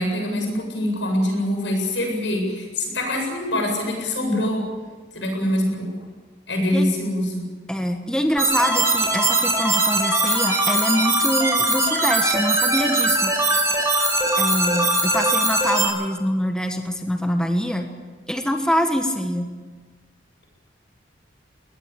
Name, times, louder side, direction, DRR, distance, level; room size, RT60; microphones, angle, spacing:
voice 1, 0.0-4.7 5.1-5.9 6.5-7.4, left 1 dB, 80° left, 2 dB, 7.9 m, -24 dB
voice 2, 7.7-13.3 14.4-17.9 18.3-19.5, equal, 5° left, 4 dB, 1.4 m, -24 dB
sound 1, 8.4-15.9, right 2 dB, 15° right, 5.0 m, -21 dB
23.0 x 18.5 x 8.5 m, 1.4 s
head